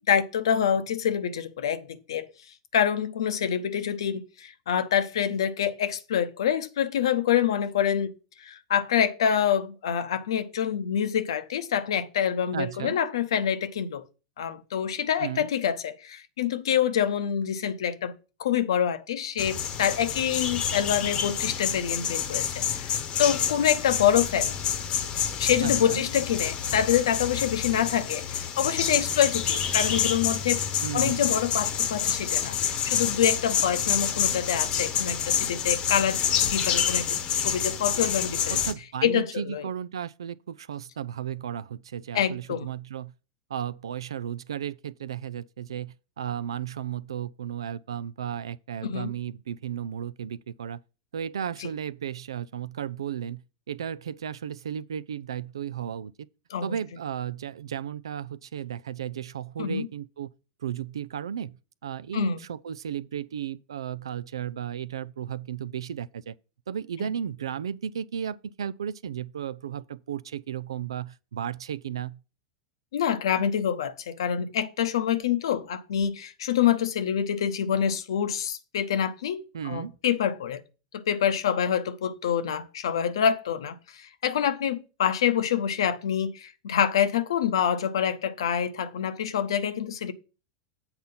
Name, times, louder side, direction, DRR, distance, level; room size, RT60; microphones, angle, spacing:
voice 1, 0.1-2.3 2.7-8.1 8.4-14.0 14.4-18.1 18.4-24.5 25.4-30.7 30.9-38.6 39.0-39.6 42.1-42.7 48.8-49.1 51.6-51.7 56.5-56.7 59.6-59.9 62.1-62.4 67.0-67.1 72.9-80.6 80.9-90.1, left 9 dB, 80° left, 0.8 m, -26 dB
voice 2, 12.5-13.0 15.2-15.5 25.6-26.0 30.8-31.3 38.5-43.1 43.5-50.8 51.1-56.3 56.6-60.3 60.6-66.3 66.7-72.2 79.5-80.0, right 9 dB, 90° right, 0.4 m, -34 dB
sound 1, 19.4-38.7, left 8 dB, 40° left, 1.0 m, -28 dB
8.0 x 4.4 x 5.5 m
hypercardioid pair, 110°, 3 cm